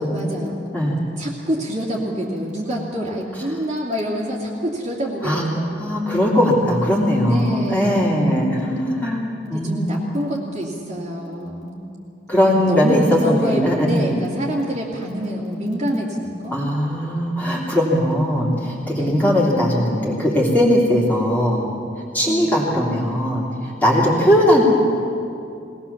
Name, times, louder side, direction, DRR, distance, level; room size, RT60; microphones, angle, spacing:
voice 1, 0.0-0.6 1.2-6.0 7.3-8.1 9.4-11.8 12.6-16.6 18.9-19.1 22.3-22.5 24.0-24.2, equal, 40° right, -4 dB, 2.5 m, -26 dB
voice 2, 5.8-10.0 12.3-14.1 16.5-21.6 22.1-24.6, equal, 10° left, -5 dB, 3.0 m, -19 dB
21.0 x 18.0 x 7.2 m, 2.6 s
head